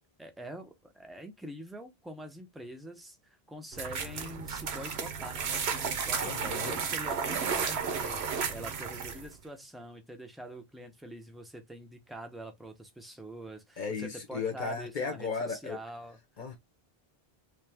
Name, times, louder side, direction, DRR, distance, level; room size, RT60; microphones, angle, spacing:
voice 1, 0.2-16.2, right 1 dB, ahead, 0.7 m, -45 dB
sound 1, 3.7-9.3, right 6 dB, 80° right, 1.1 m, -33 dB
voice 2, 6.2-6.8 13.8-15.8 16.4-16.6, left 5 dB, 50° left, 0.9 m, -35 dB
3.3 x 2.7 x 3.4 m
omnidirectional pair, 1.1 m